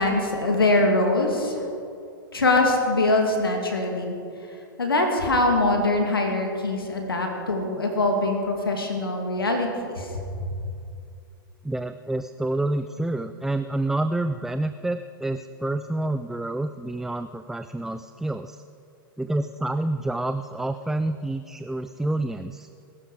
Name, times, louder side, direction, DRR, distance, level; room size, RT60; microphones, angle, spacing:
voice 1, 0.0-1.6 2.3-4.2 4.8-10.1, left 2 dB, 80° left, 2 dB, 2.5 m, -23 dB
voice 2, 11.6-18.6 19.2-22.7, right 2 dB, 5° right, 10 dB, 0.4 m, -28 dB
21.5 x 12.5 x 4.9 m, 2.5 s
figure-of-eight pair, 100°, 12 cm